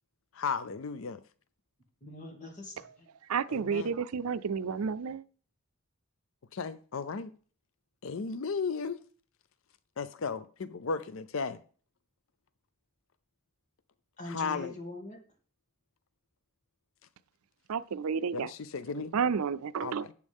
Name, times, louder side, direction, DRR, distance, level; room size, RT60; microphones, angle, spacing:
voice 1, 0.3-1.2 3.5-3.9 6.5-7.3 8.0-9.0 10.0-11.6 14.3-14.7 18.3-19.1 19.8-20.1, left 5 dB, 70° left, 0.5 m, -35 dB
voice 2, 2.0-3.1 14.2-15.2, left 2 dB, 35° left, 2.5 m, -43 dB
voice 3, 3.3-5.2 17.7-18.5 19.0-20.1, right 6 dB, 90° right, 0.5 m, -31 dB
11.5 x 8.3 x 3.6 m
head